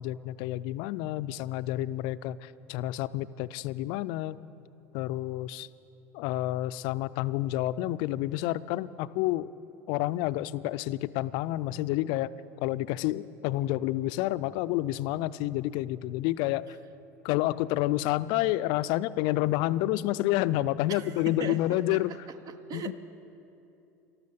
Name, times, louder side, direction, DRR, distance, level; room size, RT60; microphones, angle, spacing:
voice 1, 0.0-4.4 4.9-5.7 6.1-9.5 9.9-12.3 12.6-16.8 17.2-22.1 22.7-22.9, left 15 dB, 60° left, 16 dB, 0.4 m, -29 dB
voice 2, 20.9-22.9, right 6 dB, 45° right, 12 dB, 0.9 m, -40 dB
13.0 x 12.5 x 7.0 m, 2.8 s
hypercardioid pair, 80°, 9 cm